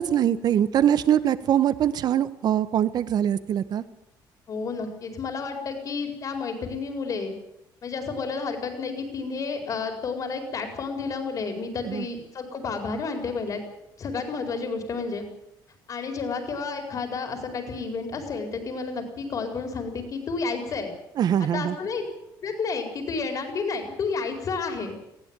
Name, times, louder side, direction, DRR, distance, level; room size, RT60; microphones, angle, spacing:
voice 1, 0.0-3.8 11.8-12.0 21.2-21.8, right 10 dB, 55° right, 15 dB, 1.3 m, -23 dB
voice 2, 4.5-7.3 7.8-13.6 14.0-15.2 15.9-20.9 21.5-22.0 22.4-25.2, left 4 dB, 45° left, 6 dB, 4.7 m, -31 dB
20.0 x 16.0 x 9.1 m, 0.80 s
cardioid pair, 135°, 8 cm